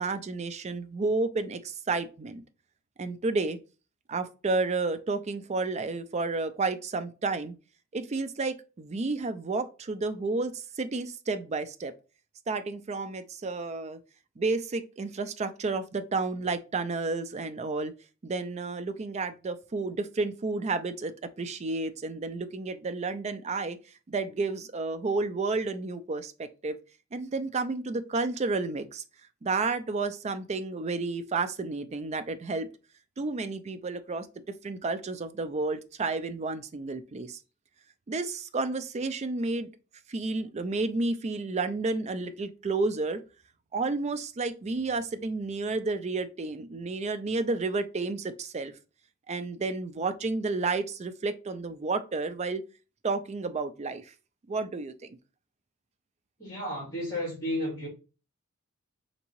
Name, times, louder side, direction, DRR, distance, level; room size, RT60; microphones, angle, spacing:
voice 1, 0.0-2.4 3.0-3.6 4.1-7.5 7.9-11.9 12.5-14.0 14.4-17.9 18.2-23.8 24.1-26.8 27.1-29.0 29.4-32.7 33.2-34.3 34.6-37.4 38.1-39.7 40.1-43.2 43.7-48.7 49.3-52.6 53.0-54.1 54.5-55.2, right 3 dB, 30° right, 0.3 m, -31 dB
voice 2, 56.4-57.9, left 1 dB, 15° left, 2.1 m, -32 dB
3.9 x 3.6 x 3.0 m
head